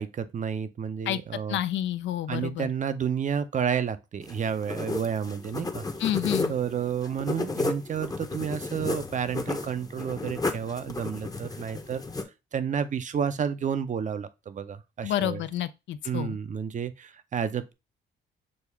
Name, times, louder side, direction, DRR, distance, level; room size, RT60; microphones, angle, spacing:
voice 1, 0.0-1.6 2.3-5.8 6.5-12.0 12.5-15.4 16.0-17.7, right 7 dB, 40° right, 0.5 m, -31 dB
voice 2, 1.5-2.7 6.0-6.5 15.0-16.4, left 12 dB, 70° left, 0.4 m, -29 dB
sound 1, 4.2-12.2, left 3 dB, 20° left, 0.7 m, -33 dB
6.3 x 2.3 x 3.4 m
cardioid pair, 90°, 20 cm